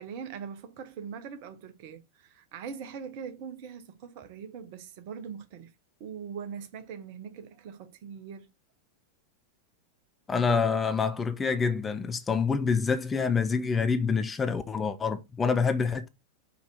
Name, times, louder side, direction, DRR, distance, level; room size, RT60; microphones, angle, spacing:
voice 1, 0.0-5.7 6.0-8.5, right 7 dB, 45° right, 1.2 m, -41 dB
voice 2, 10.3-16.1, left 5 dB, 15° left, 0.7 m, -27 dB
5.5 x 4.5 x 5.0 m
figure-of-eight pair, 90°, 0 cm